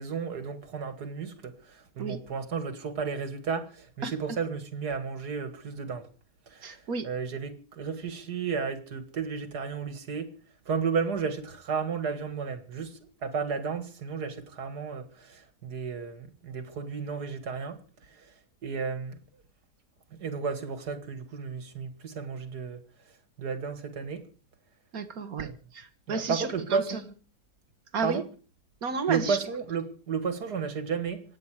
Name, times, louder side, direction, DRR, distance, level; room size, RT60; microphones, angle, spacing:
voice 1, 0.0-1.5 2.0-6.1 6.5-6.7 7.0-10.3 10.7-17.8 18.6-19.2 20.2-22.8 23.4-24.2 25.4-25.5 26.1-27.0 28.0-28.2 29.1-31.2, right 5 dB, 85° right, 2.5 m, -33 dB
voice 2, 6.6-7.1 24.9-25.5 25.7-27.0 27.9-28.2 28.8-29.4, right 5 dB, 65° right, 2.0 m, -32 dB
25.5 x 9.6 x 4.9 m
omnidirectional pair, 1.7 m